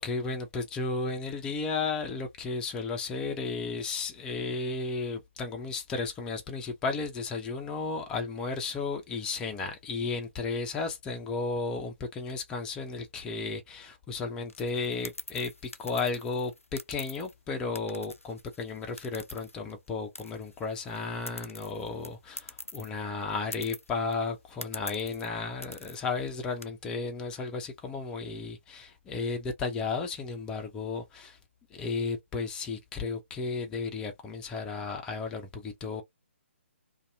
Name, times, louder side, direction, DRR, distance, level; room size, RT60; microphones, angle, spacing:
voice 1, 0.0-31.4 31.7-36.0, left 4 dB, 10° left, 0.4 m, -34 dB
sound 1, 14.5-17.3 17.7-19.9 20.1-22.9 23.2-23.3 23.5-24.1 24.6-25.3 25.6-26.0 26.4-26.7, left 2 dB, 90° left, 0.4 m, -44 dB
2.6 x 2.2 x 2.6 m
figure-of-eight pair, 135°, 7 cm